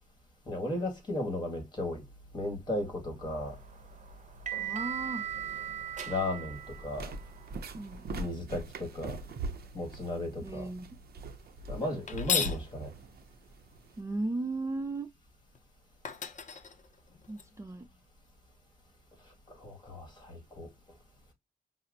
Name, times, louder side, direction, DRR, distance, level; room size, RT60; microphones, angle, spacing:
voice 1, 0.5-2.0 2.3-3.6 6.1-7.1 8.1-9.2 9.7-10.7 11.7-12.9 19.5-20.7, left 1 dB, 30° left, 1.7 m, -35 dB
sound 1, 3.4-8.2, right 9 dB, 50° right, 0.8 m, -39 dB
voice 2, 4.6-5.3 7.7-8.3 10.4-10.9 14.0-15.1 17.3-17.9, right 2 dB, 20° right, 0.4 m, -36 dB
sound 2, 6.6-14.0, right 2 dB, 85° right, 0.6 m, -42 dB
sound 3, 12.1-12.6 15.5-15.6 16.0-17.4, left 7 dB, 50° left, 0.6 m, -33 dB
5.4 x 2.0 x 2.5 m
wide cardioid pair, 100°, 16 cm